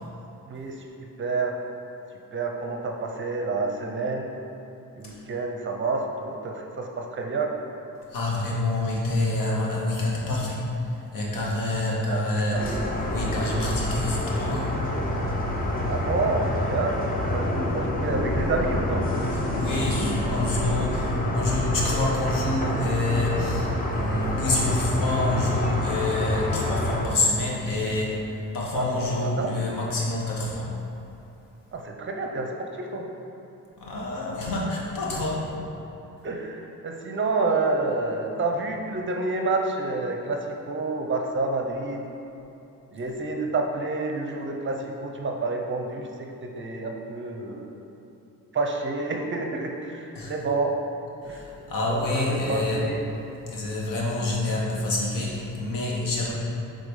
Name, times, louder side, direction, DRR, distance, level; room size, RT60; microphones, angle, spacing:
voice 1, 0.5-0.9 1.2-1.5 2.3-4.3 5.0-7.5 12.1-12.2 12.5-12.6 15.8-17.0 17.3-19.0 28.7-29.5 31.7-33.1 36.2-42.0 42.9-47.8 48.5-50.7 51.2-51.4 51.9-53.0, right 3 dB, 35° right, 2 dB, 0.6 m, -29 dB
voice 2, 8.1-12.8 13.1-14.7 19.3-28.2 28.5-30.7 33.8-35.5 50.1-50.3 51.2-52.9 53.5-56.3, left 2 dB, 90° left, -4 dB, 1.3 m, -27 dB
sound 1, 12.5-27.0, left 1 dB, 25° left, 0.7 m, -27 dB
4.8 x 3.9 x 5.4 m, 2.9 s
cardioid pair, 140°, 32 cm